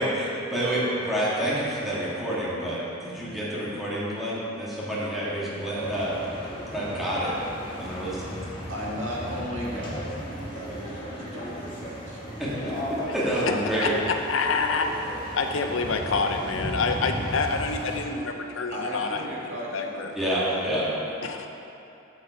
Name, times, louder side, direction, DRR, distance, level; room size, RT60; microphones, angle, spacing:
voice 1, 0.0-6.2 6.7-7.3 7.7-8.2 12.4-12.7 13.1-13.9 20.2-20.9, right 1 dB, ahead, -9 dB, 1.8 m, -28 dB
sound 1, 5.8-18.0, equal, 25° left, 1.5 m, -35 dB
voice 2, 8.7-10.2 10.5-12.4 18.7-21.2, equal, 80° right, -5 dB, 1.8 m, -36 dB
voice 3, 13.8-14.9 15.3-19.3 19.7-20.1 21.2-21.5, left 4 dB, 80° left, 4 dB, 0.6 m, -27 dB
7.4 x 7.3 x 4.7 m, 2.8 s
head